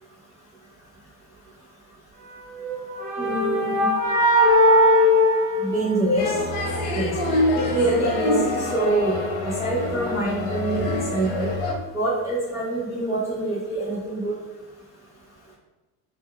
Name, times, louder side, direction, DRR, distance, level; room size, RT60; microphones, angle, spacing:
sound 1, 2.5-6.4, left 1 dB, 50° right, 0.7 m, -19 dB
voice 1, 3.2-3.9 5.6-6.2 6.9-7.1 7.5-11.5 11.9-14.3, right 2 dB, 10° right, -8 dB, 0.3 m, -25 dB
sound 2, 6.2-11.7, left 2 dB, 65° left, 0.8 m, -26 dB
3.1 x 2.1 x 3.7 m, 1.1 s
cardioid pair, 160°, 40 cm